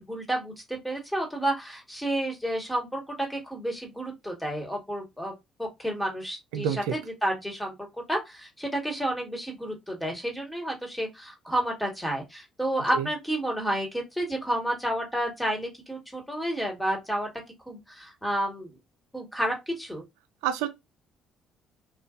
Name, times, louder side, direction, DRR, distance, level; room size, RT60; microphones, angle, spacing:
voice 1, 0.0-5.3 5.6-17.3 17.7-18.8 19.1-20.0, right 1 dB, 5° left, 1.4 m, -30 dB
voice 2, 6.5-6.8 12.9-13.0 20.4-20.7, right 9 dB, 90° right, 0.4 m, -27 dB
2.5 x 2.3 x 2.4 m
supercardioid pair, 70°, 0 cm